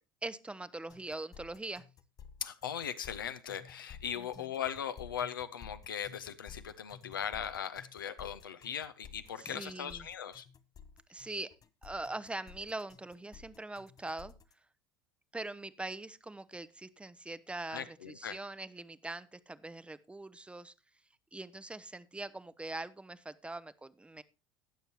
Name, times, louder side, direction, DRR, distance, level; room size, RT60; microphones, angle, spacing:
voice 1, 0.2-1.9 4.1-4.5 9.4-10.1 11.1-11.5 11.8-14.3 15.3-20.7 21.3-24.2, right 2 dB, 10° right, 0.6 m, -42 dB
sound 1, 0.9-14.5, left 6 dB, 35° left, 0.8 m, -53 dB
voice 2, 2.4-10.5 17.7-18.4, left 9 dB, 85° left, 0.8 m, -39 dB
18.5 x 6.8 x 2.9 m
hypercardioid pair, 75°, 11 cm